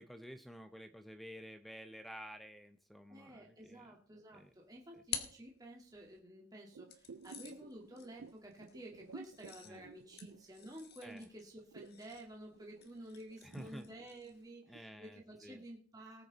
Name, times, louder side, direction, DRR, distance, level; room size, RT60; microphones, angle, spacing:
voice 1, 0.0-4.0 4.3-4.5 4.9-5.0 9.6-9.9 11.0-11.3 13.4-13.9 14.7-15.6, equal, ahead, 9 dB, 0.6 m, -51 dB
voice 2, 3.1-16.3, right 1 dB, 20° right, -1 dB, 2.0 m, -52 dB
sound 1, 4.4-6.2 6.9-14.5, left 8 dB, 50° left, 1.5 m, -50 dB
sound 2, 6.7-11.2 11.4-14.9 15.3-15.4, right 5 dB, 80° right, 0.5 m, -54 dB
19.0 x 8.0 x 4.0 m, 0.43 s
head